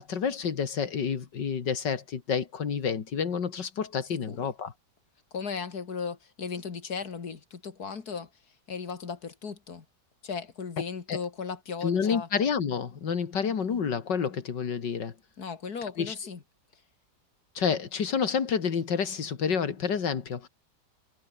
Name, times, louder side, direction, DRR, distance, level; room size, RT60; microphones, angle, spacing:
voice 1, 0.0-4.7 11.1-11.2 11.8-15.1 16.0-16.1 17.5-20.5, left 6 dB, 80° left, 2.6 m, -29 dB
voice 2, 4.1-4.5 5.3-8.3 8.7-9.9 10.2-12.3 15.4-16.4, left 5 dB, 60° left, 2.7 m, -36 dB
omnidirectional pair, 1.9 m